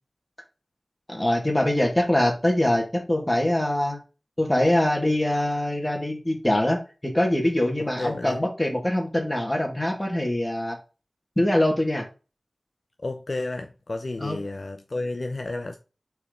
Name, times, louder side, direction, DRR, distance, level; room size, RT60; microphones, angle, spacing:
voice 1, 1.1-4.0 4.4-10.8 11.4-12.1 14.2-14.4, left 1 dB, 15° left, 1.9 m, -23 dB
voice 2, 7.8-8.4 13.0-15.8, left 2 dB, 65° left, 0.6 m, -31 dB
4.5 x 4.2 x 5.1 m
wide cardioid pair, 70°, 0 cm